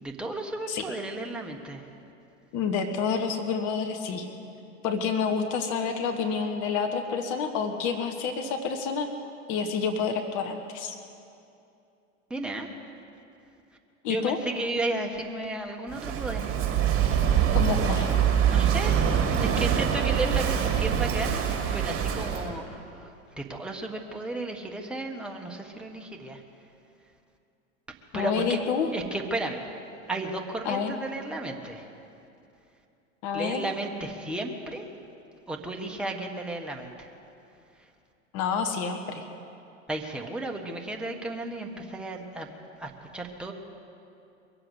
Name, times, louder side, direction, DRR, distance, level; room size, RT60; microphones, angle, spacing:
voice 1, 0.0-1.8 12.3-12.7 14.1-16.5 18.4-18.9 19.4-21.4 21.7-23.1 23.4-26.4 28.1-28.6 28.9-29.6 30.1-31.8 33.3-34.9 35.5-36.9 39.9-42.5 42.8-43.5, right 2 dB, ahead, 0 dB, 1.6 m, -33 dB
voice 2, 2.5-4.3 4.8-9.1 9.5-11.0 14.0-14.4 17.5-18.1 28.1-28.9 30.6-31.0 33.2-33.6 38.3-39.2, left 6 dB, 50° left, 5 dB, 1.5 m, -28 dB
Walk footsteps / Wind / Waves surf, 15.9-22.5, right 8 dB, 35° right, 2.9 m, -24 dB
22.5 x 7.8 x 8.1 m, 2.6 s
hypercardioid pair, 90°, 39 cm